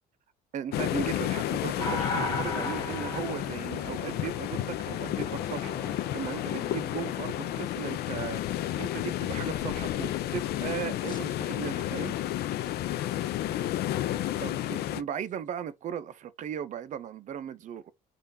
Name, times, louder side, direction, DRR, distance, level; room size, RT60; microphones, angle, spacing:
voice 1, 0.5-5.8 6.1-12.2 14.4-17.9, right 9 dB, 45° right, 0.5 m, -37 dB
sound 1, 0.7-15.0, left 13 dB, 70° left, 0.5 m, -31 dB
sound 2, 1.8-7.6 11.1-11.2, left 2 dB, 25° left, 1.6 m, -37 dB
3.6 x 2.5 x 4.1 m
cardioid pair, 110°, 17 cm